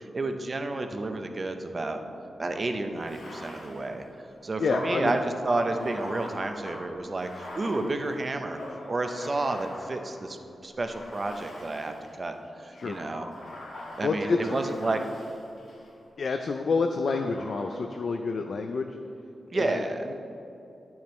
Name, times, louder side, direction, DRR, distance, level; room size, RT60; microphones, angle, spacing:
voice 1, 0.0-2.0 2.4-4.1 4.4-8.6 8.9-10.4 10.6-13.3 14.0-15.0 19.5-20.0, right 2 dB, 40° right, 6 dB, 0.6 m, -30 dB
Bathtub (filling or washing), 3.0-10.3 10.9-12.2 12.7-15.9 17.1-18.0, left 1 dB, 85° left, 1.7 m, -42 dB
voice 2, 4.6-5.2 12.7-13.0 14.0-14.6 16.2-19.0 19.5-20.1, left 4 dB, 65° left, 5 dB, 0.4 m, -28 dB
9.9 x 7.1 x 3.1 m, 2.9 s
wide cardioid pair, 100°, 0 cm